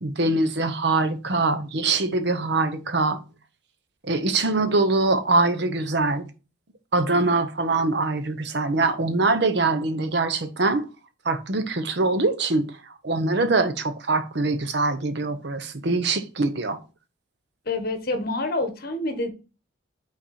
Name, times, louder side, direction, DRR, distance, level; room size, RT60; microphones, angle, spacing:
voice 1, 0.0-3.2 4.0-6.3 6.9-10.9 11.2-12.6 13.0-16.8, right 3 dB, 55° right, 0.8 m, -23 dB
voice 2, 17.7-19.3, left 2 dB, 50° left, 1.1 m, -27 dB
5.7 x 4.2 x 4.2 m
head